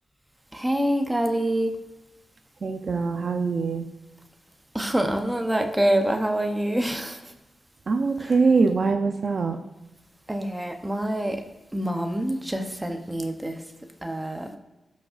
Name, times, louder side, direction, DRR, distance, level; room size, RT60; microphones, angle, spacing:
voice 1, 0.5-1.7 4.7-7.2 10.3-11.4 11.7-13.6 14.0-14.5, right 1 dB, 10° right, 4 dB, 0.8 m, -26 dB
voice 2, 2.6-3.9 7.9-9.6, right 4 dB, 45° right, 6 dB, 0.6 m, -23 dB
17.0 x 6.3 x 2.6 m, 1.0 s
wide cardioid pair, 175°, 0 cm